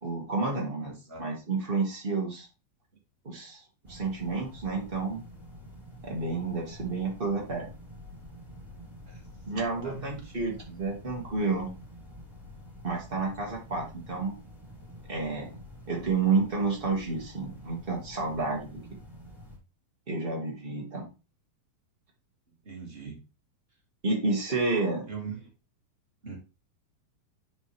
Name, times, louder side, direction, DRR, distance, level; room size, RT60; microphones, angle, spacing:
voice 1, 0.0-2.5 3.2-5.2 6.0-7.7 9.5-11.7 12.8-14.4 15.1-15.6 15.9-18.8 20.1-21.1 24.0-25.1, right 3 dB, 85° right, -1 dB, 0.5 m, -30 dB
voice 2, 0.8-1.2 9.1-9.2 9.5-10.3 22.6-23.2 25.1-25.5 26.2-26.4, right 6 dB, 25° right, -1 dB, 1.2 m, -41 dB
sound 1, 3.8-19.6, equal, ahead, 2.8 m, -48 dB
10.0 x 5.2 x 3.3 m, 0.29 s
omnidirectional pair, 4.3 m